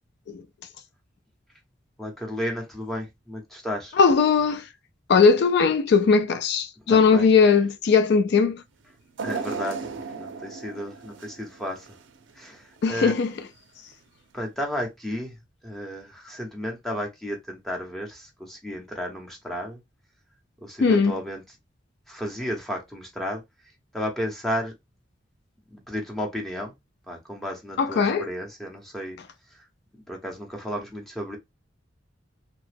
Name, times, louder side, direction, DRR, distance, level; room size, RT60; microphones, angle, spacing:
voice 1, 2.0-4.0 6.9-7.3 9.2-11.9 12.3-13.2 14.3-15.4 15.6-19.8 20.6-21.4 22.1-23.4 23.9-24.7 25.7-26.7 27.1-29.2 29.5-29.6 29.9-31.4, equal, ahead, 0.9 m, -33 dB
voice 2, 4.0-4.7 5.1-8.6 12.8-13.3 20.8-21.1 27.8-28.3, left 5 dB, 60° left, 0.4 m, -19 dB
sound 1, 9.2-12.3 12.8-12.9 13.9-14.0, right 5 dB, 85° right, 0.5 m, -35 dB
2.9 x 2.1 x 3.3 m
head